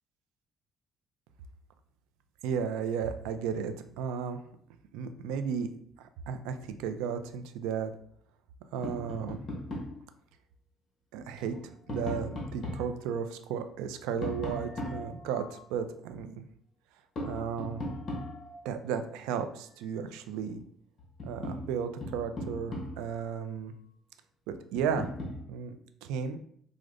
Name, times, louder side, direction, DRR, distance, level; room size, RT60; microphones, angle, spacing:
voice 1, 2.4-4.4 4.9-5.7 6.3-7.9 8.7-9.4 11.1-11.6 11.9-16.4 17.2-17.8 18.6-20.6 21.3-23.7 24.5-25.1 25.5-26.4, right 7 dB, 90° right, 9 dB, 0.3 m, -34 dB
Tap, 8.8-10.0 11.4-12.9 14.2-15.6 17.1-18.7 20.5-20.6 21.0-23.2 24.7-25.4, left 1 dB, 45° left, 0.9 m, -38 dB
4.8 x 2.0 x 2.4 m, 0.65 s
cardioid pair, 105°, 0 cm